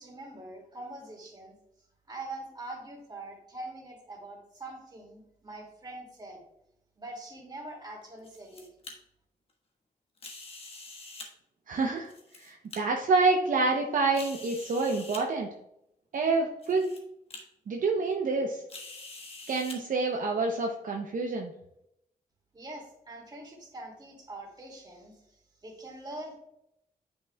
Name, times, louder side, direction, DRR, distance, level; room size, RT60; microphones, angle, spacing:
voice 1, 0.0-1.6 2.1-6.4 7.0-8.6 22.5-26.4, right 2 dB, 25° right, 0 dB, 2.2 m, -43 dB
sound 1, 8.0-8.9 10.2-11.3 12.0-12.8 13.4-13.5 14.1-15.2 16.1-16.2 16.6-17.0 17.3-17.4 18.7-19.8, left 3 dB, 40° left, 1.3 m, -45 dB
voice 2, 11.7-12.1 12.4-15.5 16.1-16.9 17.7-18.6 19.5-21.5, right 3 dB, 60° right, 2 dB, 0.7 m, -27 dB
9.4 x 5.6 x 2.2 m, 0.79 s
wide cardioid pair, 120°, 15 cm